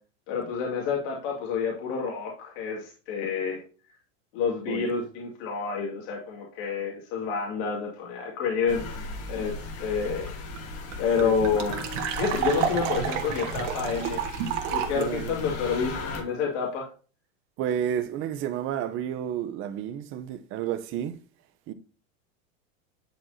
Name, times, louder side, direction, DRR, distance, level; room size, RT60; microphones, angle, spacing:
voice 1, 0.3-3.6 4.3-8.9 9.3-9.5 9.8-10.3 11.0-11.8 12.2-14.2 14.7-16.9, left 6 dB, 55° left, 2.5 m, -28 dB
sound 1, 8.7-16.2, left 3 dB, 35° left, 1.8 m, -37 dB
sound 2, 10.3-10.4 10.5-10.6 10.9-15.0, right 9 dB, 70° right, 1.7 m, -30 dB
voice 2, 11.2-11.8 14.9-15.4 17.6-21.1 21.7-21.8, right 10 dB, 35° right, 0.8 m, -31 dB
10.0 x 4.7 x 2.7 m
supercardioid pair, 145°, 38 cm